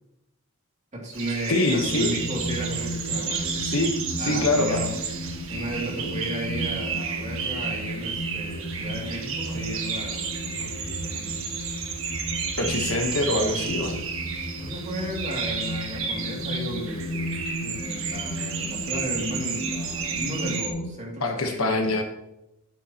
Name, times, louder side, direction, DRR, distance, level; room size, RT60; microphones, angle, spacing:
voice 1, 0.9-3.6 4.2-4.9 5.5-11.5 12.5-12.8 13.2-14.1 14.6-22.0, right 1 dB, 35° right, -2 dB, 2.7 m, -34 dB
sound 1, 1.1-20.7, right 6 dB, 70° right, 1.4 m, -32 dB
voice 2, 1.5-2.1 3.6-4.0 4.2-4.8 12.6-14.0 21.2-22.0, left 2 dB, 75° left, 4 dB, 1.3 m, -24 dB
sound 2, 1.8-20.9, equal, 45° left, 2.1 m, -34 dB
12.5 x 8.3 x 3.0 m, 0.88 s
head